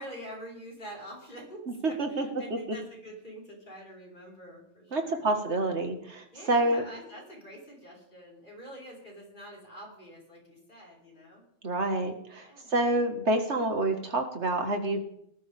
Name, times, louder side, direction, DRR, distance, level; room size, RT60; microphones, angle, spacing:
voice 1, 0.0-5.3 6.3-11.4 12.4-12.8, equal, 40° left, -3 dB, 5.3 m, -46 dB
voice 2, 1.8-2.6 4.9-6.8 11.6-15.0, right 2 dB, 65° right, 5 dB, 2.2 m, -28 dB
19.0 x 12.5 x 3.6 m, 0.72 s
omnidirectional pair, 1.3 m